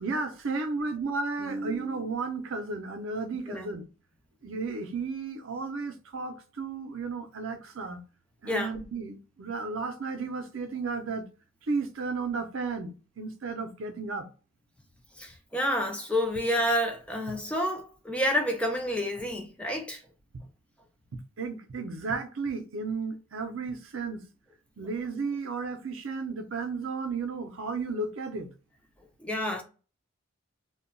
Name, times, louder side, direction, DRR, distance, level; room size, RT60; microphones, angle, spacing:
voice 1, 0.0-3.8 4.4-8.0 8.4-11.3 11.7-14.3 21.1-24.2 24.8-28.5, right 4 dB, 85° right, 0.5 m, -33 dB
voice 2, 15.2-20.0 29.2-29.6, equal, 5° left, 0.3 m, -29 dB
2.2 x 2.1 x 3.7 m
head